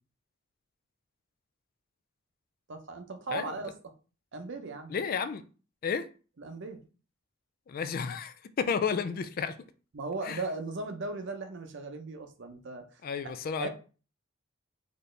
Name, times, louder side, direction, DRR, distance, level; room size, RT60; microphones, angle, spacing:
voice 1, 2.7-3.7 4.3-4.9 6.4-6.8 9.9-12.8 13.6-13.7, right 3 dB, 60° right, 0.7 m, -37 dB
voice 2, 4.9-5.4 5.8-6.1 7.7-9.6 10.2-10.4 13.0-13.7, left 6 dB, 45° left, 0.3 m, -32 dB
4.3 x 2.7 x 3.2 m
head